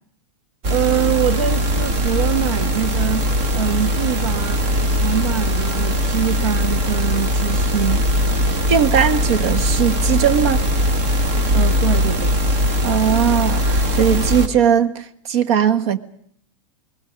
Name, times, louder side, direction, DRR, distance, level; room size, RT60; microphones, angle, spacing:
sound 1, 0.6-14.5, equal, 40° right, 2.0 m, -20 dB
voice 1, 0.7-3.2 3.5-4.7 5.0-8.1 11.5-12.4, right 10 dB, 85° right, 0.8 m, -24 dB
voice 2, 8.7-10.7 12.8-16.0, right 8 dB, 60° right, 1.3 m, -18 dB
28.5 x 20.5 x 5.1 m
supercardioid pair, 150°, 17 cm